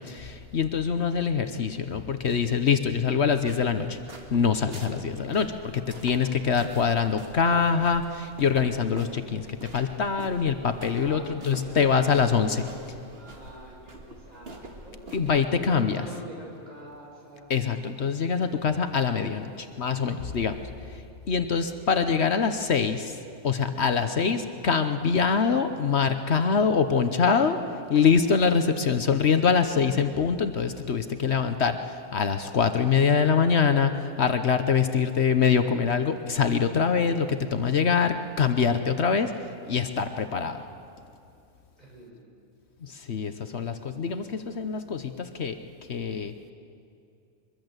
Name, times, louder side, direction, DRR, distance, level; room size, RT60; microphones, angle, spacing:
voice 1, 0.0-4.0 4.3-9.5 9.7-12.7 15.1-16.1 17.5-20.6 20.9-21.0 21.3-23.2 23.4-27.6 27.9-39.3 39.7-40.6 42.8-45.6 45.9-46.3, left 6 dB, 65° left, 8 dB, 1.2 m, -24 dB
sound 1, 3.3-15.5, right 2 dB, 55° right, 2.3 m, -46 dB
voice 2, 10.9-12.0 12.4-17.5 41.8-42.2, equal, 35° right, -3 dB, 6.9 m, -45 dB
23.5 x 22.5 x 8.1 m, 2.6 s
omnidirectional pair, 1.3 m